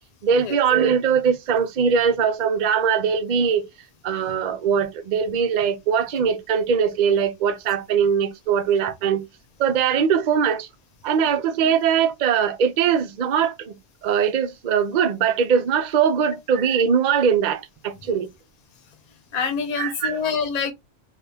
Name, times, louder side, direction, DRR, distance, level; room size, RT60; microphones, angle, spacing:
voice 1, 0.2-3.7 4.0-9.3 9.6-10.7 11.0-13.8 14.0-18.3 19.8-20.2, right 7 dB, 65° right, 0.4 m, -21 dB
voice 2, 19.3-20.7, left 5 dB, 40° left, 0.6 m, -25 dB
3.4 x 2.3 x 2.7 m
omnidirectional pair, 1.4 m